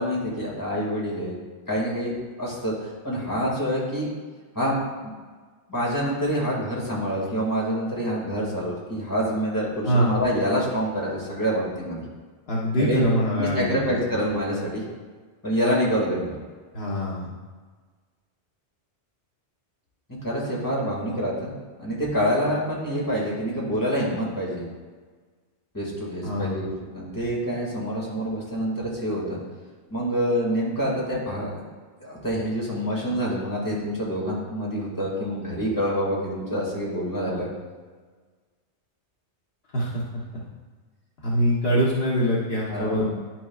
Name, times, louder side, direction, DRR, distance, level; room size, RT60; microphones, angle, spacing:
voice 1, 0.0-1.4 1.7-2.7 3.0-4.1 4.6-5.1 5.7-12.0 12.7-13.1 13.4-14.8 15.4-16.3 20.2-24.6 25.7-29.4 29.9-31.6 32.0-37.5 42.7-43.0, equal, 15° left, -5 dB, 2.1 m, -26 dB
voice 2, 12.5-14.1 16.7-17.3 26.2-26.6 39.7-40.0 41.2-43.1, equal, 60° left, -6 dB, 1.3 m, -24 dB
10.5 x 5.9 x 2.4 m, 1.4 s
omnidirectional pair, 1.1 m